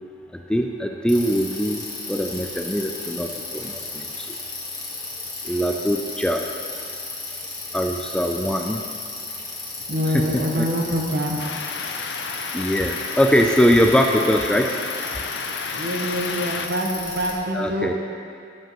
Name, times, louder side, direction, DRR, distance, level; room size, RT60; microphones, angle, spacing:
voice 1, 0.3-1.8 2.1-4.3 5.4-6.5 7.7-8.8 10.1-10.7 12.5-14.8 17.5-17.9, equal, 5° left, 2 dB, 0.3 m, -22 dB
Bicycle, 1.1-17.3, left 3 dB, 25° left, 1.8 m, -34 dB
voice 2, 9.9-11.4 15.7-17.9, equal, 60° right, 0 dB, 1.1 m, -25 dB
sound 1, 11.4-16.7, left 5 dB, 70° left, 0.5 m, -32 dB
12.5 x 7.6 x 3.0 m, 2.4 s
head